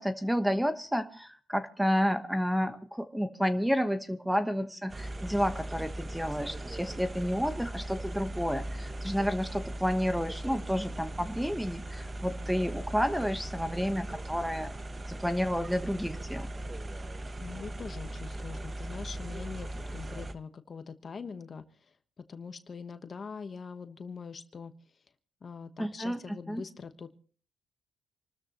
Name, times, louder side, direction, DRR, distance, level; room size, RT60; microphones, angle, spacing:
voice 1, 0.0-14.7 15.1-16.5 25.8-26.2 26.5-26.6, equal, 5° right, 10 dB, 1.2 m, -30 dB
sound 1, 4.9-20.3, right 1 dB, 25° right, 1.0 m, -39 dB
voice 2, 17.4-21.6 22.2-24.7 25.4-27.2, left 5 dB, 40° left, 9 dB, 1.2 m, -43 dB
27.5 x 13.5 x 3.1 m, 0.42 s
cardioid pair, 90°, 0 cm